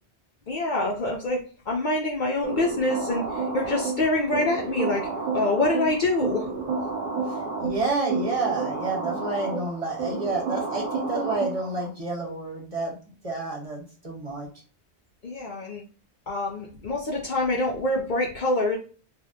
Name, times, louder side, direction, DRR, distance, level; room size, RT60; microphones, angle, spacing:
voice 1, 0.5-1.4 1.7-6.5 15.2-15.8 16.3-18.8, left 2 dB, 55° left, -1 dB, 0.6 m, -26 dB
sound 1, 2.4-11.9, right 4 dB, 85° right, 1.1 m, -31 dB
voice 2, 7.3-12.9 13.2-14.5, right 3 dB, 35° right, -2 dB, 0.9 m, -29 dB
2.7 x 2.1 x 3.5 m, 0.38 s
omnidirectional pair, 1.1 m